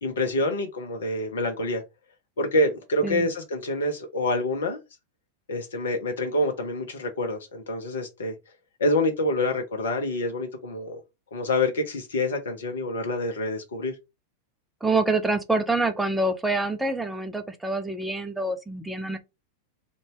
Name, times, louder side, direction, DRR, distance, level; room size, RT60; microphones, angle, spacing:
voice 1, 0.0-1.8 2.4-4.8 5.5-8.4 8.8-11.0 11.3-13.9, left 1 dB, 65° left, 0.6 m, -27 dB
voice 2, 14.8-19.2, right 2 dB, 5° right, 0.4 m, -26 dB
2.6 x 2.2 x 2.9 m
figure-of-eight pair, 90°, 0 cm